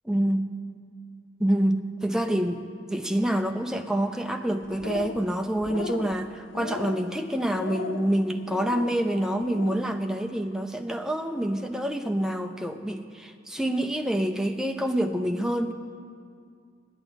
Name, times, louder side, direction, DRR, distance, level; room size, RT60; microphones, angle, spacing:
voice 1, 0.1-0.4 1.4-15.7, right 1 dB, 5° right, 6 dB, 0.4 m, -27 dB
sound 1, 4.6-5.3 5.6-6.1 6.5-7.1 7.6-8.1 8.5-8.9 9.4-9.8, left 5 dB, 90° left, 0.5 m, -36 dB
9.8 x 8.0 x 8.9 m, 2.2 s
head